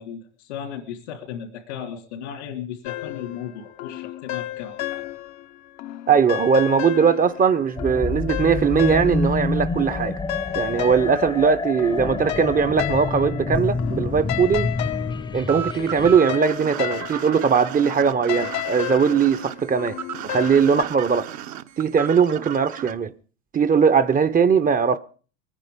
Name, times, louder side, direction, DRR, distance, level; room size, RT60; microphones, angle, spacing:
voice 1, 0.0-5.0, left 8 dB, 85° left, 3.3 m, -35 dB
sound 1, 2.8-5.5 5.8-9.5 9.8-20.8, left 15 dB, 55° left, 0.8 m, -33 dB
voice 2, 6.1-10.2 10.5-14.7 15.3-20.0 20.2-21.3 21.8-23.1 23.5-25.0, right 6 dB, 25° right, 0.7 m, -20 dB
sound 2, 7.8-16.2, left 3 dB, 15° left, 0.7 m, -28 dB
sound 3, 15.5-22.9, right 10 dB, 55° right, 1.0 m, -34 dB
22.0 x 9.9 x 5.1 m
hypercardioid pair, 90°, 34 cm